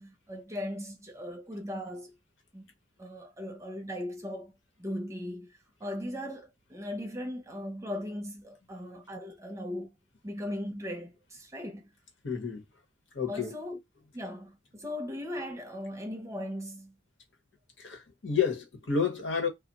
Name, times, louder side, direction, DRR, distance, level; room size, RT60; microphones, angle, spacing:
voice 1, 0.0-2.2 2.5-2.7 3.0-4.5 4.8-9.9 10.2-11.9 13.3-13.8 14.1-17.0, left 1 dB, 15° right, 0.6 m, -38 dB
voice 2, 12.2-12.6 13.1-13.5 17.8-19.5, left 6 dB, 80° left, 1.0 m, -30 dB
2.4 x 2.1 x 3.9 m
head